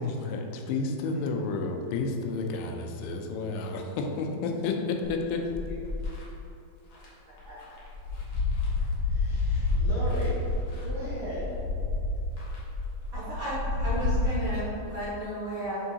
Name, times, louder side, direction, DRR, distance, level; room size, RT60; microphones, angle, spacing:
voice 1, 0.0-5.5, left 3 dB, 85° left, 3 dB, 2.7 m, -31 dB
sound 1, 5.0-6.2 6.9-7.1 7.4-14.3, left 3 dB, 65° left, 1.7 m, -29 dB
voice 2, 9.1-10.4 10.8-11.5, right 1 dB, 55° right, -12 dB, 1.5 m, -37 dB
voice 3, 13.1-15.9, equal, 85° right, -11 dB, 1.1 m, -33 dB
9.0 x 3.7 x 2.8 m, 2.8 s
omnidirectional pair, 4.8 m